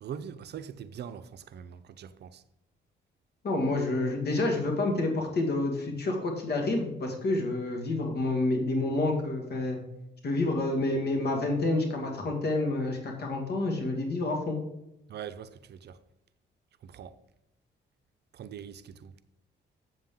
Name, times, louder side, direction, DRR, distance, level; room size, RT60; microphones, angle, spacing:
voice 1, 0.0-2.4 15.1-16.0 16.8-17.2 18.3-19.1, right 8 dB, 60° right, 0.6 m, -42 dB
voice 2, 3.4-9.8 10.2-14.6, left 2 dB, 55° left, 1.9 m, -28 dB
7.9 x 7.2 x 3.7 m
cardioid pair, 90°, 20 cm